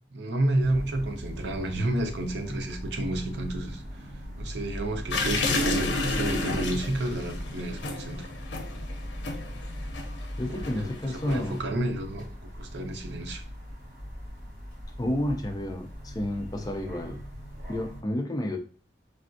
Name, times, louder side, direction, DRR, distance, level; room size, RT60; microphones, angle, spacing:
voice 1, 0.1-3.8 4.4-8.3 10.5-12.3 12.5-13.4, right 1 dB, 70° right, 5 dB, 0.5 m, -30 dB
sound 1, 0.6-18.0, equal, 50° right, 1.3 m, -40 dB
sound 2, 5.1-11.6, left 2 dB, 85° left, 0.5 m, -31 dB
voice 2, 10.4-11.6 15.0-17.2 17.7-18.6, left 1 dB, 20° left, 5 dB, 0.4 m, -30 dB
3.4 x 2.3 x 2.5 m, 0.41 s
head